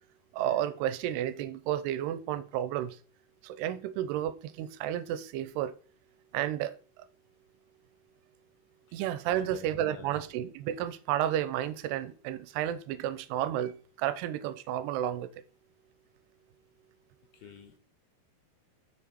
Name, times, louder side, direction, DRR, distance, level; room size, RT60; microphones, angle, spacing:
voice 1, 0.3-3.0 3.4-5.7 6.3-6.8 8.9-15.3, right 11 dB, 85° right, 2.7 m, -32 dB
voice 2, 9.3-10.1 17.4-17.8, left 7 dB, 75° left, 2.8 m, -49 dB
7.2 x 6.5 x 4.5 m
omnidirectional pair, 4.7 m